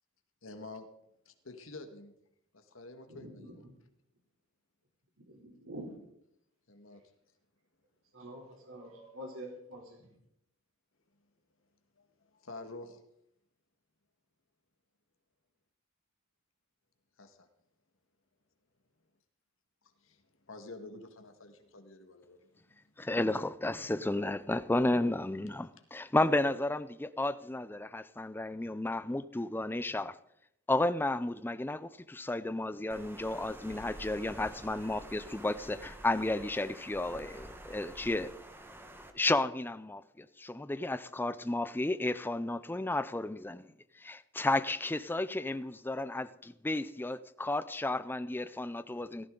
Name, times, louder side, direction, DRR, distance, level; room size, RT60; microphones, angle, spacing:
voice 1, 0.4-0.9 1.2-2.1 2.5-3.6 6.7-7.0 12.0-12.1 12.3-13.0 17.2-17.5 20.0-20.2 20.5-22.9, left 2 dB, 70° left, 1.8 m, -48 dB
voice 2, 3.1-3.7 5.2-5.9 8.1-10.1, right 1 dB, 75° right, 3.5 m, -46 dB
voice 3, 23.0-30.2 30.7-38.3 39.1-43.7 44.0-49.3, left 2 dB, 10° left, 0.4 m, -32 dB
Water, 32.9-39.1, right 1 dB, 10° right, 1.3 m, -49 dB
15.5 x 14.5 x 3.9 m
head